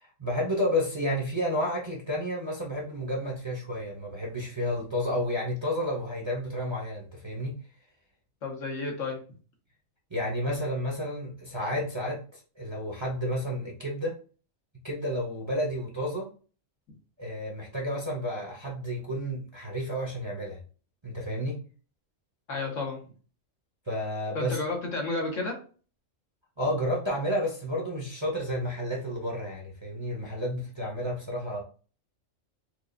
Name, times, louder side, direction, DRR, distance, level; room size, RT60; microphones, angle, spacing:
voice 1, 0.0-7.5 10.1-14.2 14.8-16.3 17.2-20.6 21.0-21.6 23.9-24.6 26.6-31.6, equal, 25° right, -3 dB, 0.7 m, -31 dB
voice 2, 8.4-9.2 22.5-23.0 24.3-25.6, left 3 dB, 75° left, 0 dB, 1.5 m, -31 dB
4.6 x 2.4 x 2.5 m, 0.38 s
omnidirectional pair, 1.3 m